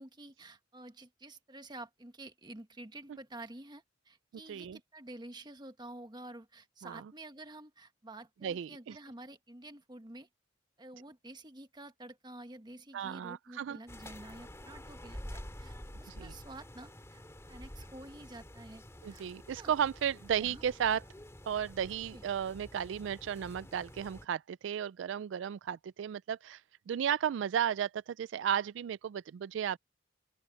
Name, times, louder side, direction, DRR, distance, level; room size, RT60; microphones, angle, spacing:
voice 1, 0.0-10.3 10.8-17.2 17.5-19.7 20.4-20.6 22.1-22.2, right 2 dB, 20° right, 1.3 m, -50 dB
voice 2, 8.4-9.0 12.9-13.8 16.1-16.3 19.0-21.0 21.5-26.6 26.9-29.8, right 8 dB, 75° right, 0.3 m, -34 dB
sound 1, 13.9-24.3, left 1 dB, 15° left, 2.3 m, -49 dB
open air
head